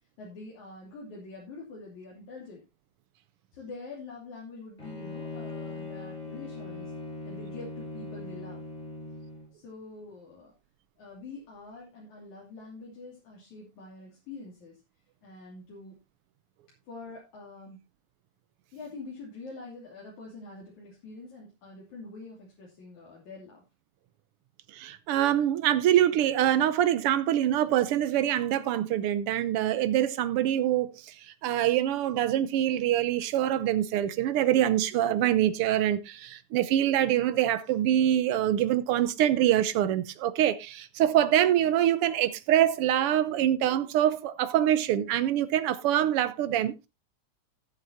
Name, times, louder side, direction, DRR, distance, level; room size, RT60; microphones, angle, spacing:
voice 1, 0.2-2.7 3.5-6.9 7.3-8.6 9.5-10.5 11.0-14.8 15.2-16.0 16.9-17.8 18.7-23.6, left 3 dB, 75° left, 4.3 m, -45 dB
Bowed string instrument, 4.8-9.5, left 2 dB, 25° left, 2.9 m, -40 dB
voice 2, 24.7-31.1 31.4-46.9, right 11 dB, 80° right, 1.3 m, -25 dB
18.0 x 7.8 x 2.7 m
omnidirectional pair, 3.4 m